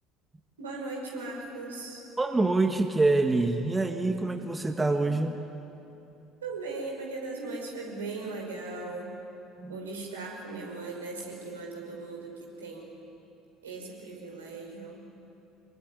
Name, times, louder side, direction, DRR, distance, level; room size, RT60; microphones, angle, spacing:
voice 1, 0.6-2.0 6.4-9.1 9.7-12.9 13.6-15.0, right 3 dB, 75° right, -1 dB, 5.6 m, -38 dB
voice 2, 2.2-5.4 9.6-9.8, right 2 dB, 15° right, 7 dB, 1.5 m, -26 dB
25.5 x 22.0 x 9.8 m, 2.9 s
figure-of-eight pair, 60°, 0 cm